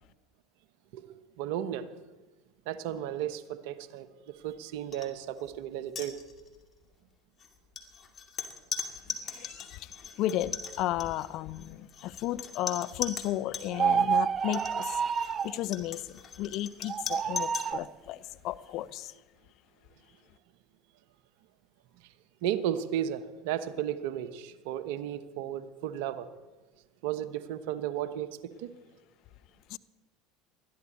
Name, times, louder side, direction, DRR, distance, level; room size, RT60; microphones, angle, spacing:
voice 1, 0.9-1.9 2.7-6.2 22.4-26.3 27.0-28.7, right 11 dB, 65° right, 12 dB, 1.0 m, -34 dB
sound 1, 4.9-5.1 5.4-5.6 5.9-6.6 7.4-13.7 14.4-17.7, left 6 dB, 35° left, 2.3 m, -39 dB
voice 2, 9.2-19.1 29.7-29.8, left 14 dB, 55° left, 16 dB, 0.6 m, -34 dB
sound 2, 13.7-15.6 16.9-17.9, right 7 dB, 35° right, 0.4 m, -28 dB
21.0 x 13.5 x 4.2 m, 1.2 s
hypercardioid pair, 75°, 0 cm